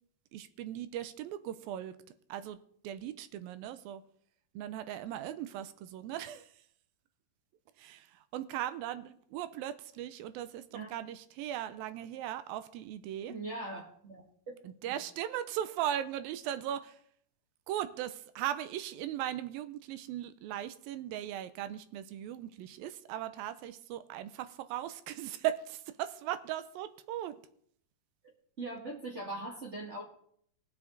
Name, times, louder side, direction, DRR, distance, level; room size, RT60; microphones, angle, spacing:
voice 1, 0.3-2.0 2.3-2.6 2.8-4.0 4.5-6.5 7.8-13.3 14.6-17.0 17.7-27.4, right 11 dB, 85° right, 12 dB, 2.4 m, -38 dB
voice 2, 13.3-14.2 14.5-14.9 28.6-30.0, right 2 dB, 35° right, -2 dB, 1.2 m, -41 dB
19.5 x 7.1 x 3.9 m, 0.65 s
omnidirectional pair, 4.2 m